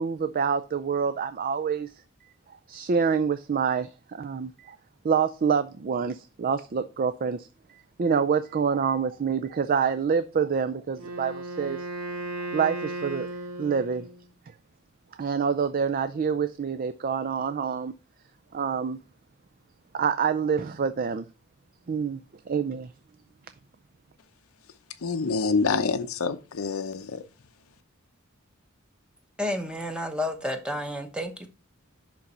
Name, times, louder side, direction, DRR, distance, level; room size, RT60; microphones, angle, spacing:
voice 1, 0.0-1.9 2.5-4.8 5.0-11.8 12.5-13.3 13.6-14.1 15.2-17.9 18.5-19.0 19.9-21.3 21.9-22.2 22.5-22.9, right 6 dB, 45° right, 0.4 m, -27 dB
Wind instrument woodwind instrument, 10.9-14.2, right 2 dB, 70° right, 3.5 m, -35 dB
voice 2, 25.0-27.2, left 4 dB, 85° left, 0.7 m, -26 dB
voice 3, 29.4-31.5, left 1 dB, 5° right, 0.9 m, -31 dB
10.5 x 3.9 x 4.2 m
head